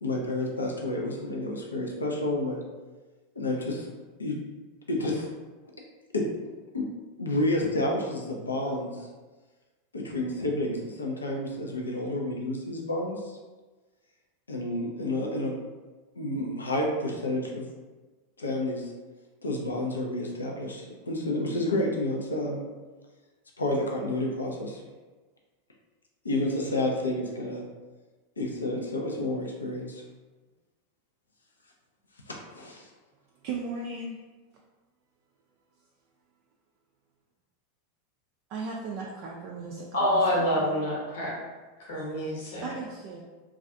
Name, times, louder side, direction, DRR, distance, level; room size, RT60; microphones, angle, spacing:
voice 1, 0.0-2.6 3.4-3.9 4.2-4.4 4.9-5.3 6.1-6.2 6.7-6.9 7.2-9.0 9.9-13.4 14.5-15.5 16.2-17.7 18.4-18.9 19.4-22.6 23.6-24.8 26.2-27.6 28.4-30.0 32.5-32.9 39.6-39.7, left 1 dB, 85° left, 0 dB, 0.4 m, -30 dB
voice 2, 33.4-34.2 38.5-40.8 42.6-43.2, right 4 dB, 50° right, -2 dB, 0.3 m, -37 dB
voice 3, 39.9-41.4 41.8-42.6, equal, 65° left, -4 dB, 0.9 m, -27 dB
2.3 x 2.3 x 2.6 m, 1.3 s
figure-of-eight pair, 90°, 0 cm